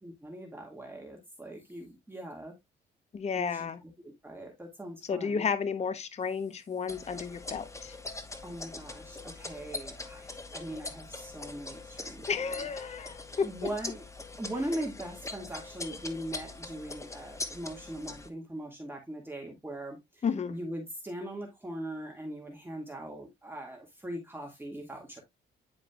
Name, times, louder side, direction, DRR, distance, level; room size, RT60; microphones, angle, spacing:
voice 1, 0.0-2.5 3.4-3.7 4.0-5.5 8.4-12.3 13.4-14.0 14.4-25.2, right 1 dB, 10° right, 1.9 m, -40 dB
voice 2, 3.1-3.8 5.0-7.9 12.3-13.7 20.2-20.6, left 6 dB, 35° left, 0.7 m, -32 dB
sound 1, 6.9-18.3, left 2 dB, 15° left, 1.1 m, -42 dB
9.6 x 4.9 x 2.3 m
cardioid pair, 90°, 20 cm